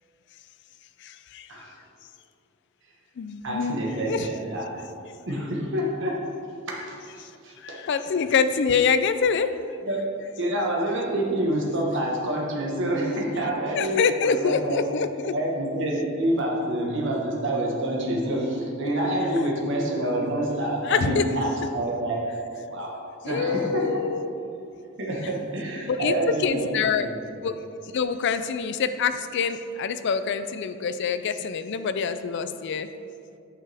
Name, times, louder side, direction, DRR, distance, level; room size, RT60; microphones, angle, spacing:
voice 1, 1.0-1.5 3.2-3.8 4.0-4.3 7.6-9.5 13.7-15.3 20.8-21.2 23.2-24.3 25.8-27.1 27.4-27.5 27.9-32.9, left 6 dB, 55° left, 11 dB, 0.4 m, -25 dB
voice 2, 3.4-4.7 5.3-6.2 6.7-7.8 9.9-10.0 10.4-14.8 15.3-22.2 22.7-22.9 23.2-24.0 25.0-26.7 27.1-27.4, right 1 dB, 60° right, -2 dB, 1.4 m, -27 dB
8.8 x 6.6 x 3.5 m, 2.6 s
head